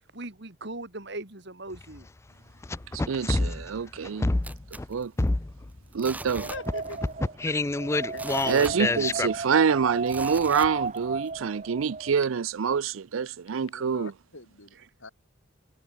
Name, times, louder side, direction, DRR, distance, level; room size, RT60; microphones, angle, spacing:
voice 1, 0.1-2.1 8.7-9.1, right 2 dB, 55° right, 3.2 m, -39 dB
sound 1, 1.7-1.8 2.6-4.9 5.2-5.8 6.3-9.3, left 2 dB, 15° left, 0.3 m, -27 dB
voice 2, 2.9-4.3 4.9-5.1 5.9-6.5 8.4-14.1, right 6 dB, 80° right, 0.5 m, -26 dB
sound 2, 4.4-5.6 5.9-7.1 7.4-7.5 7.9-9.4 10.1-11.3 11.8-11.9, right 2 dB, 10° right, 0.8 m, -41 dB
Wind, 6.1-12.1, right 4 dB, 35° right, 1.2 m, -34 dB
voice 3, 6.4-7.0 8.1-8.2 13.7-14.7 15.0-15.1, left 2 dB, 70° left, 6.2 m, -42 dB
head